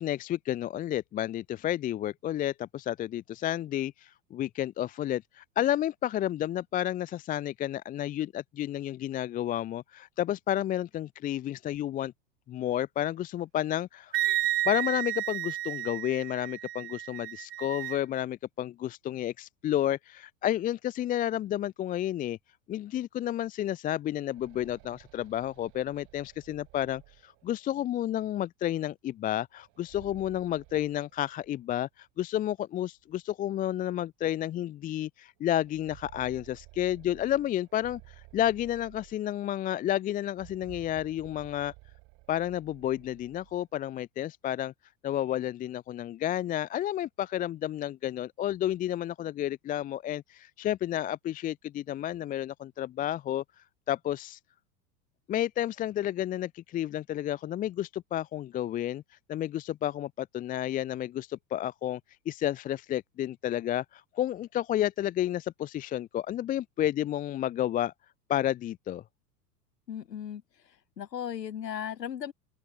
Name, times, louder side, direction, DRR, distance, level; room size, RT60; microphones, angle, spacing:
voice 1, 0.0-12.1 12.5-14.2 14.7-22.4 22.7-41.7 42.3-44.7 45.0-53.4 53.9-54.4 55.3-59.0 59.3-62.0 62.3-67.9 68.3-69.0, left 12 dB, 20° left, 0.5 m, -31 dB
Wind instrument woodwind instrument, 14.1-18.0, right 14 dB, 80° right, 0.8 m, -32 dB
sound 1, 24.0-27.8 29.6-31.8 32.1-32.2 33.1-33.2 33.7-33.8 35.4-39.6 40.3-43.6, right 25 dB, 50° right, 5.8 m, -54 dB
voice 2, 69.9-70.4 71.0-72.3, left 9 dB, 85° left, 1.5 m, -36 dB
open air
hypercardioid pair, 95°, 48 cm